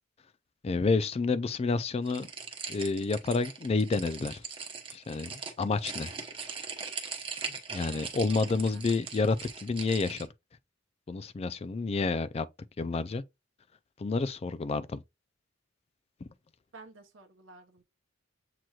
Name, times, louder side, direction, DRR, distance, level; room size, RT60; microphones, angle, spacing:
voice 1, 0.6-2.3 2.7-4.4 4.9-6.1 7.7-9.4 9.6-10.3 11.1-12.5 12.8-13.2 14.0-15.0 16.2-16.3, left 4 dB, 30° left, 0.3 m, -29 dB
sound 1, 2.1-10.3, right 5 dB, 25° right, 0.9 m, -40 dB
voice 2, 7.8-8.8 16.7-17.8, right 3 dB, 80° right, 0.9 m, -52 dB
7.6 x 3.0 x 2.3 m
head